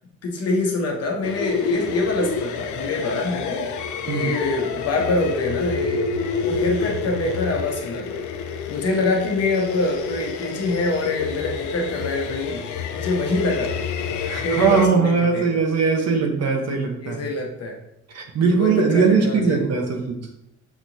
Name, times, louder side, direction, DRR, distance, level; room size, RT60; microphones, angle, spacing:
voice 1, 0.2-3.7 4.0-6.1 6.4-8.2 8.7-12.6 12.9-13.7 14.4-15.5 17.0-17.8 18.6-19.8, left 2 dB, 55° left, 1 dB, 1.1 m, -25 dB
sound 1, 1.2-14.9, left 5 dB, 75° left, 0.5 m, -28 dB
voice 2, 14.2-17.2 18.1-20.2, right 5 dB, 60° right, 3 dB, 0.9 m, -20 dB
6.3 x 2.9 x 2.7 m, 0.82 s
cardioid pair, 90°, 30 cm